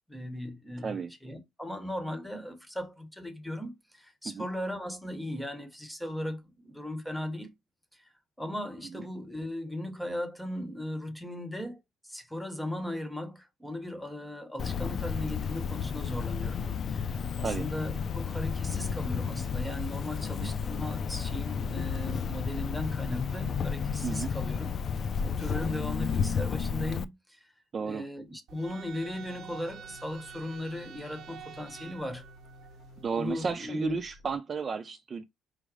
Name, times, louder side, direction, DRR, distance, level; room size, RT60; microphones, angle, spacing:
voice 1, 0.1-7.5 7.9-8.1 8.4-24.7 25.2-27.5 27.8-32.3 33.2-34.0, left 1 dB, 5° left, 1.0 m, -37 dB
Cricket, 14.6-27.0, left 6 dB, 45° left, 0.3 m, -32 dB
voice 2, 24.0-24.4 27.7-28.1 33.0-35.2, right 5 dB, 35° right, 0.5 m, -33 dB
sound 1, 28.5-33.5, right 7 dB, 65° right, 0.8 m, -48 dB
sound 2, 29.0-33.1 33.8-34.4, left 7 dB, 80° left, 1.5 m, -57 dB
4.9 x 2.0 x 4.7 m
cardioid pair, 120°, 0 cm